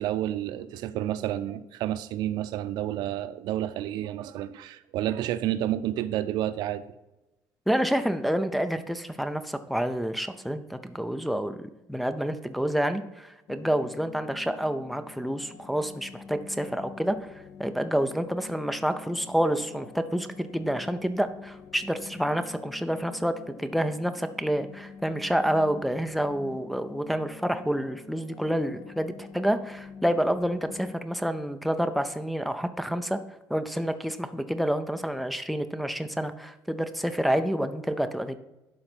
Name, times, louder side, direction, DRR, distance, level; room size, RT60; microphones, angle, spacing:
voice 1, 0.0-6.8, right 12 dB, 85° right, 13 dB, 0.6 m, -30 dB
voice 2, 7.7-11.6 11.9-17.2 17.6-33.2 33.5-38.4, equal, ahead, 8 dB, 0.5 m, -28 dB
sound 1, 13.5-30.9, left 5 dB, 45° left, 0.7 m, -46 dB
11.5 x 3.9 x 6.1 m, 0.96 s
cardioid pair, 170°, 7 cm